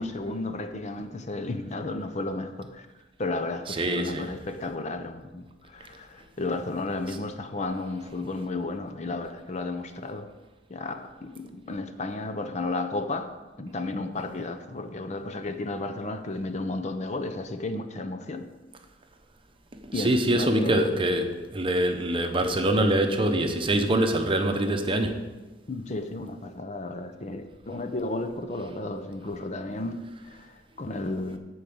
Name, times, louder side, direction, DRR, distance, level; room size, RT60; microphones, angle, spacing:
voice 1, 0.0-2.9 3.2-10.3 10.7-18.5 19.9-20.9 25.7-31.4, left 2 dB, 40° left, 8 dB, 0.7 m, -33 dB
voice 2, 3.7-4.3 19.8-25.2, right 1 dB, 30° right, 5 dB, 0.9 m, -24 dB
10.5 x 4.8 x 7.9 m, 1.1 s
head